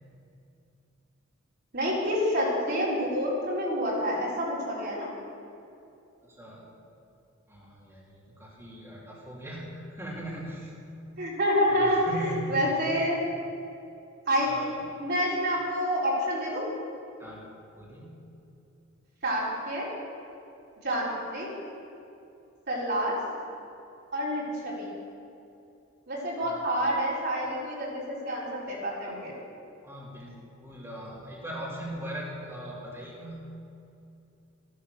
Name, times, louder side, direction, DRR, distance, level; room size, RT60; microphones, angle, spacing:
voice 1, 1.7-5.1 11.2-12.2 12.5-13.2 14.3-14.5 15.0-16.7 19.2-19.9 20.8-21.5 22.7-23.2 24.1-24.9 26.1-29.3, equal, 55° right, -6 dB, 4.1 m, -28 dB
voice 2, 6.2-6.7 7.5-10.7 11.7-12.7 14.4-14.8 17.2-17.5 17.7-18.3 26.4-26.6 29.8-30.3 30.6-33.5, right 1 dB, 15° right, -6 dB, 2.9 m, -40 dB
14.0 x 11.5 x 6.5 m, 2.7 s
head